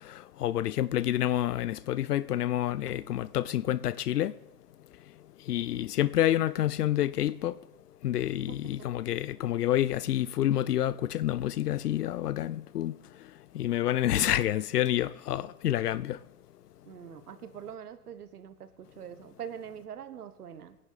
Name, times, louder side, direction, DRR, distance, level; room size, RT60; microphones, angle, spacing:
voice 1, 0.0-4.3 5.5-7.5 8.0-12.9 13.5-16.2, left 12 dB, 85° left, 0.6 m, -28 dB
voice 2, 16.8-20.8, right 8 dB, 80° right, 1.3 m, -43 dB
19.0 x 11.0 x 4.1 m
hypercardioid pair, 150°, 45 cm